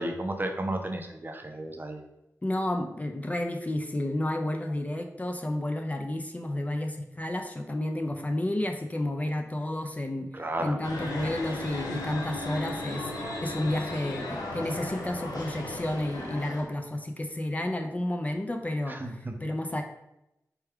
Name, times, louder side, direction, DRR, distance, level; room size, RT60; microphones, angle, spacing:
voice 1, 0.0-2.0 10.3-10.8 18.9-19.3, right 1 dB, 30° right, 4 dB, 0.5 m, -33 dB
voice 2, 2.4-19.8, left 1 dB, 25° left, 5 dB, 0.4 m, -31 dB
sound 1, 10.8-16.6, left 2 dB, 90° left, 0.7 m, -36 dB
4.5 x 2.2 x 3.4 m, 0.88 s
wide cardioid pair, 65°, 6 cm